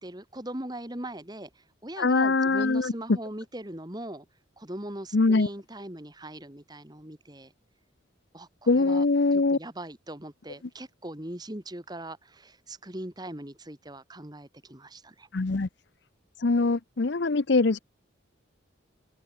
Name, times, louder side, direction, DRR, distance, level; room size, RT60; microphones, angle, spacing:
voice 1, 0.0-1.5 1.8-4.3 4.6-7.5 8.3-9.0 9.5-15.3, right 1 dB, 20° right, 2.1 m, -40 dB
voice 2, 2.0-2.9 5.1-5.5 8.7-9.6 15.3-15.7 16.4-17.8, left 3 dB, 60° left, 0.7 m, -23 dB
open air
head